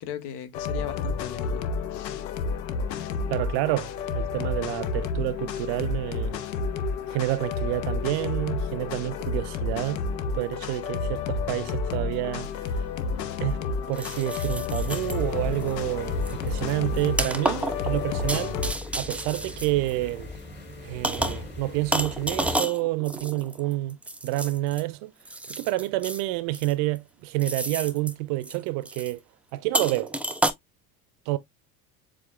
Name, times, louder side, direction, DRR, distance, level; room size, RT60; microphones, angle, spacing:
voice 1, 0.0-2.3 3.0-3.2, left 9 dB, 50° left, 1.1 m, -39 dB
sound 1, 0.5-18.7, left 4 dB, 75° left, 0.8 m, -30 dB
voice 2, 3.3-6.4 7.1-10.0 10.3-12.5 13.4-13.6 13.9-18.6 19.0-20.3 20.8-24.0 24.2-25.1 25.5-29.2 29.5-30.1 31.3-31.4, right 18 dB, 55° right, 0.6 m, -28 dB
sound 2, 12.4-12.5 13.9-15.2 15.6-15.8 16.2-20.4 21.0-21.5 21.9-24.8 25.3-26.2 26.5-27.0 27.4-28.1 28.4-28.6 28.9-29.1 29.7-30.5, right 1 dB, 5° right, 0.5 m, -31 dB
sound 3, 14.8-22.6, left 2 dB, 20° left, 2.1 m, -40 dB
7.3 x 2.5 x 2.4 m
hypercardioid pair, 65°, 49 cm